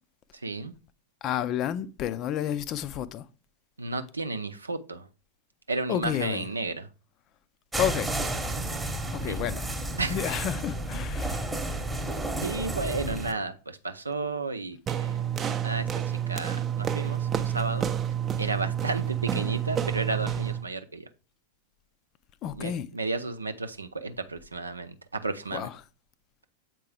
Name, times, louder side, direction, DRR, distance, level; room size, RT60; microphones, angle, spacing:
voice 1, 0.4-0.7 3.8-5.1 5.7-6.9 9.2-9.4 10.0-10.2 12.4-15.1 15.6-15.9 16.3-17.9 18.4-21.1 22.5-25.7, right 3 dB, 80° right, 0.6 m, -33 dB
voice 2, 1.2-3.3 5.9-6.4 7.8-8.1 9.1-9.7 10.1-11.5 22.4-22.9 25.5-25.8, left 10 dB, 35° left, 0.5 m, -30 dB
sound 1, 7.7-13.3, right 1 dB, 10° right, 1.0 m, -31 dB
sound 2, 14.9-20.7, right 9 dB, 25° right, 0.6 m, -29 dB
7.5 x 4.6 x 3.3 m
figure-of-eight pair, 90°, 0 cm